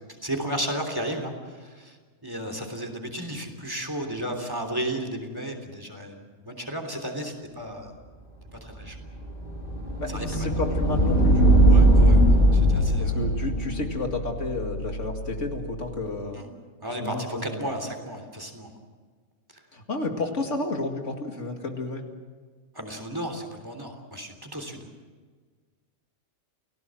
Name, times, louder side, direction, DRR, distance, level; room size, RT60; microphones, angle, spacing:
voice 1, 0.2-7.9 8.5-9.0 10.1-10.5 11.7-12.2 12.5-13.2 16.3-16.5 16.8-18.7 19.5-19.6 22.7-24.9, right 1 dB, 15° right, 3 dB, 3.3 m, -34 dB
sound 1, 8.8-15.7, right 1 dB, 40° left, 5.3 m, -21 dB
voice 2, 10.0-11.6 13.0-16.5 17.0-17.6 19.7-22.0, left 2 dB, 70° left, 3 dB, 2.5 m, -31 dB
29.5 x 17.5 x 7.7 m, 1.5 s
omnidirectional pair, 1.3 m